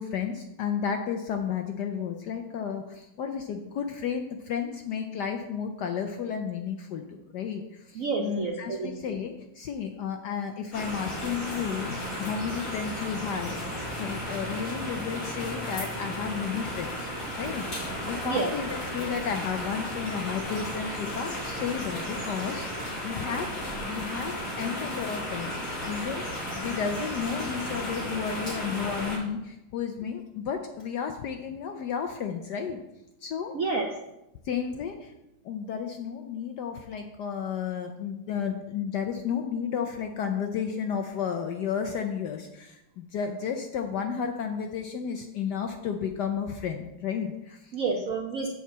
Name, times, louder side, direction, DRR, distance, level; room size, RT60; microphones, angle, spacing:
voice 1, 0.0-17.1 17.4-26.3 26.6-32.8 33.2-33.5 34.4-35.1 35.4-47.8, left 7 dB, 70° left, 5 dB, 1.0 m, -32 dB
voice 2, 7.9-9.2 18.1-18.5 33.5-33.9 47.7-48.5, right 4 dB, 65° right, 2 dB, 0.8 m, -29 dB
sound 1, 10.7-29.2, equal, 40° left, 3.4 m, -34 dB
7.2 x 4.8 x 7.1 m, 0.91 s
omnidirectional pair, 2.3 m